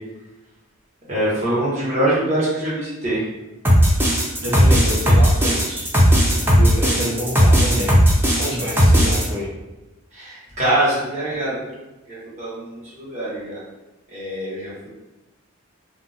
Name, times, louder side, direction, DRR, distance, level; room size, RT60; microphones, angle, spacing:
voice 1, 1.1-3.3 6.3-6.7 10.1-11.8 12.1-13.6 14.1-14.7, right 1 dB, 30° right, -9 dB, 1.0 m, -24 dB
sound 1, 3.6-9.2, equal, 10° right, 0.4 m, -15 dB
voice 2, 4.4-5.9 6.6-7.9 8.4-9.5, equal, 70° right, -6 dB, 0.9 m, -27 dB
2.4 x 2.0 x 3.9 m, 1.0 s
head